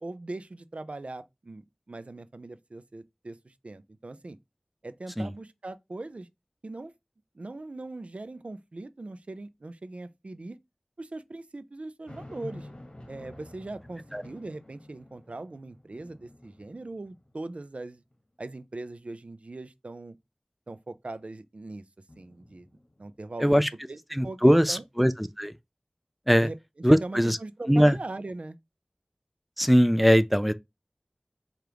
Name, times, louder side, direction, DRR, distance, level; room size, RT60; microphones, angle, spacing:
voice 1, 0.0-4.4 4.8-6.3 6.6-6.9 7.3-10.6 11.0-12.7 13.1-18.0 18.4-20.2 20.7-21.8 22.2-22.7 23.0-23.6 23.9-24.0 24.2-24.8 26.4-26.6 27.0-28.6, right 2 dB, 70° right, 0.4 m, -40 dB
sound 1, 12.1-17.6 18.1-18.2 22.1-23.2, left 1 dB, 50° left, 1.2 m, -49 dB
voice 2, 23.4-23.7 24.1-25.5 26.3-26.5 26.8-27.4 27.7-28.0 29.6-30.5, equal, 5° right, 0.4 m, -21 dB
4.9 x 2.4 x 2.9 m
wide cardioid pair, 40°, 2 cm